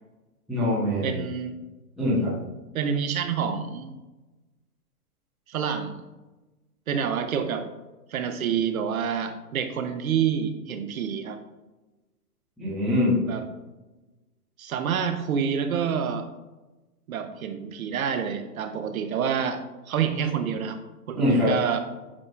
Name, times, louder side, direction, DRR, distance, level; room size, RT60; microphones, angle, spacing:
voice 1, 0.5-1.2 2.0-2.4 12.6-13.2 21.1-21.5, left 1 dB, ahead, -11 dB, 0.3 m, -23 dB
voice 2, 1.0-1.6 2.7-3.9 5.5-6.0 6.9-7.7 8.1-11.4 13.2-13.4 14.6-16.3 17.1-19.6 19.9-20.8 21.1-21.8, right 7 dB, 65° right, 8 dB, 0.9 m, -27 dB
8.5 x 4.8 x 2.4 m, 1.1 s
hypercardioid pair, 165°, 46 cm